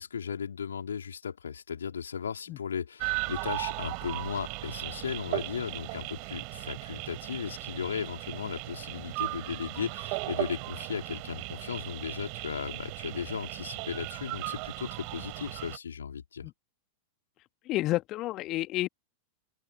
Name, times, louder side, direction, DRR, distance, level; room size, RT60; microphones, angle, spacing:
voice 1, 0.0-16.5, left 7 dB, 70° left, 3.9 m, -36 dB
sound 1, 3.0-15.8, right 36 dB, 45° right, 5.3 m, -37 dB
voice 2, 17.7-18.9, left 17 dB, 35° left, 2.2 m, -30 dB
open air
figure-of-eight pair, 90°, 0 cm